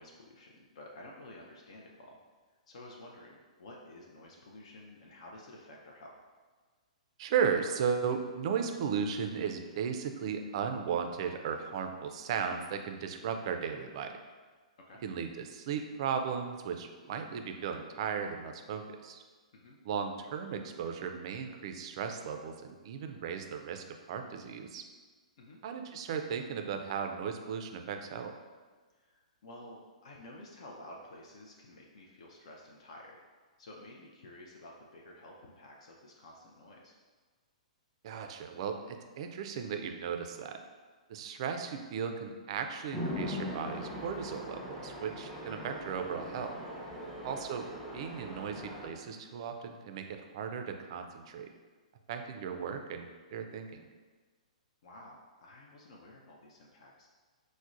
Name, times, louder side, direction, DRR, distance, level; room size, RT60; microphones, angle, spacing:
voice 1, 0.0-2.2 2.7-6.2 14.9-15.0 19.5-19.8 25.4-25.6 28.9-33.2 33.6-37.0 47.2-47.4 54.8-57.1, left 1 dB, 60° left, -1 dB, 0.4 m, -52 dB
voice 2, 7.2-14.1 15.0-19.2 19.8-24.8 25.6-28.3 38.0-40.6 41.1-46.6 47.2-47.7 47.9-51.5 52.1-53.8, right 6 dB, 50° right, 6 dB, 0.3 m, -36 dB
Chatter / Traffic noise roadway noise / Train, 42.9-48.9, left 1 dB, 10° left, 0.6 m, -40 dB
4.6 x 2.1 x 2.4 m, 1.4 s
figure-of-eight pair, 115°, 4 cm